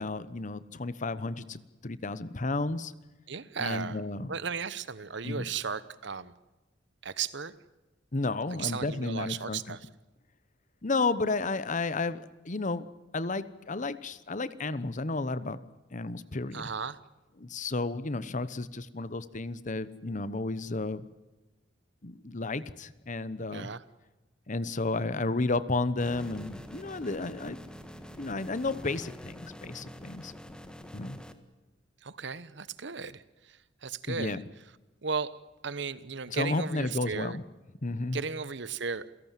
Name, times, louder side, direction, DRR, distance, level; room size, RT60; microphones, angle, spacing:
voice 1, 0.0-2.9 3.6-4.3 5.2-5.4 8.1-9.8 10.8-12.8 13.1-15.6 15.9-16.6 17.4-21.1 22.0-23.7 24.5-27.6 28.2-30.3 30.9-31.2 34.1-34.4 36.3-37.4 37.8-38.2, left 3 dB, 40° left, 15 dB, 1.0 m, -32 dB
voice 2, 3.3-4.0 4.3-6.3 7.0-7.5 8.5-9.8 16.5-17.0 23.5-23.8 32.0-33.2 33.8-34.4 35.0-35.3 35.6-37.4 38.1-39.0, right 5 dB, 65° right, 16 dB, 1.1 m, -35 dB
sound 1, 26.0-31.3, equal, 5° left, 1.6 m, -46 dB
28.0 x 17.5 x 7.5 m, 1.1 s
head